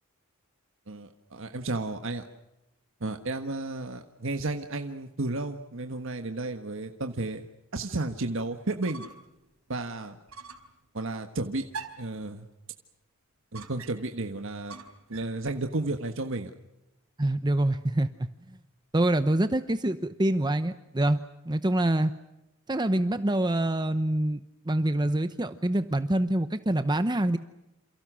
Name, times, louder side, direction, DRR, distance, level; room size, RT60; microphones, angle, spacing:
voice 1, 0.9-2.2 3.0-7.4 7.7-9.1 9.7-10.2 10.9-11.7 12.0-12.4 13.5-14.8 15.1-16.5, right 2 dB, 65° right, 6 dB, 1.5 m, -32 dB
sound 1, 8.8-9.3 9.7-9.8 10.3-10.7 11.7-12.2 13.5-14.2 14.7-15.4, right 4 dB, 85° right, 4.5 m, -43 dB
voice 2, 17.2-18.1 18.9-22.1 22.7-24.4 24.7-27.4, right 1 dB, 20° right, 10 dB, 0.9 m, -25 dB
28.5 x 28.5 x 6.3 m, 0.93 s
head